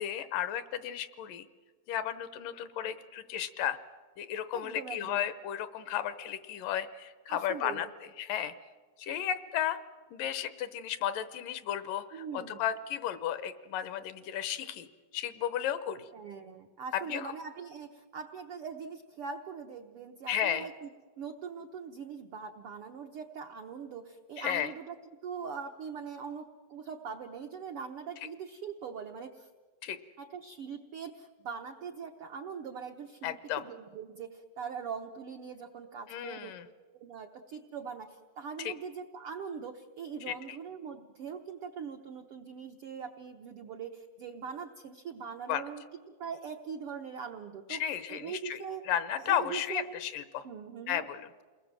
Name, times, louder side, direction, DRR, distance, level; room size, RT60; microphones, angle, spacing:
voice 1, 0.0-1.5 1.9-3.8 4.2-7.9 8.2-8.5 9.0-9.8 10.1-14.9 15.1-16.1 16.9-17.3 20.3-20.7 24.4-24.7 29.8-30.0 33.2-33.7 36.1-36.6 38.6-38.7 40.3-40.4 45.5-45.6 47.7-48.6 48.9-50.4 50.9-51.3, left 10 dB, 75° left, 13 dB, 2.5 m, -34 dB
voice 2, 4.5-5.3 7.3-7.8 12.1-12.7 16.1-20.9 21.2-24.9 25.2-29.5 30.2-36.5 36.9-47.8 48.1-48.9 49.2-50.0 50.4-51.1, right 6 dB, 70° right, 4 dB, 1.3 m, -42 dB
29.0 x 20.5 x 7.6 m, 1.4 s
omnidirectional pair, 4.0 m